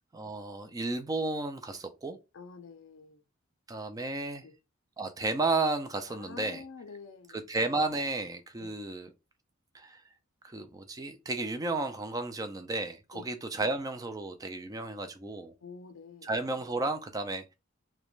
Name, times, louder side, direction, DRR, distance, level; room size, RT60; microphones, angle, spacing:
voice 1, 0.1-2.2 3.7-4.4 5.0-6.6 7.3-9.1 9.7-10.0 10.4-15.5 16.2-17.5, right 2 dB, 15° right, 0.3 m, -33 dB
voice 2, 2.3-3.2 4.4-4.5 6.1-7.4 8.6-8.8 13.1-13.3 15.6-16.3, left 5 dB, 65° left, 0.4 m, -47 dB
2.4 x 2.1 x 3.0 m
head